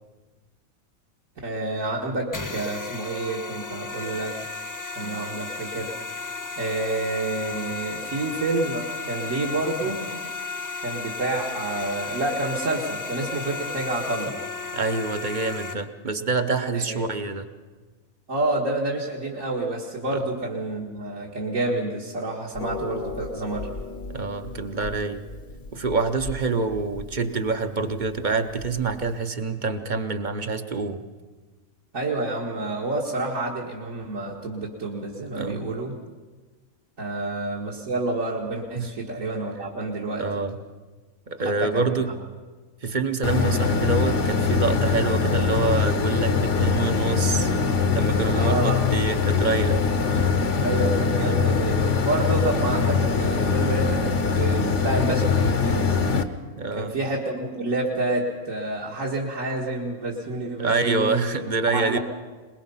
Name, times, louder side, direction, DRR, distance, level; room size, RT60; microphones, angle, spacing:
voice 1, 1.4-4.4 5.0-5.9 6.6-10.0 10.8-14.4 16.7-17.0 18.3-23.7 31.9-35.9 37.0-40.4 41.4-42.0 48.3-48.9 50.6-56.0 56.7-61.4 61.7-62.0, right 2 dB, 70° right, -4 dB, 2.2 m, -28 dB
sound 1, 2.3-15.7, left 4 dB, 15° left, 0.8 m, -34 dB
voice 2, 14.7-17.5 20.1-20.2 24.1-25.2 25.7-31.0 35.3-35.7 38.7-38.9 40.2-40.6 41.3-42.1 42.8-47.5 47.9-49.8 51.2-51.4 56.5-56.9 60.6-62.0, right 4 dB, 40° right, 9 dB, 0.9 m, -26 dB
Harp, 22.5-29.3, left 4 dB, 40° left, 0.9 m, -38 dB
sound 2, 43.2-56.2, left 5 dB, 60° left, 1.3 m, -22 dB
22.5 x 21.0 x 5.6 m, 1.3 s
omnidirectional pair, 1.5 m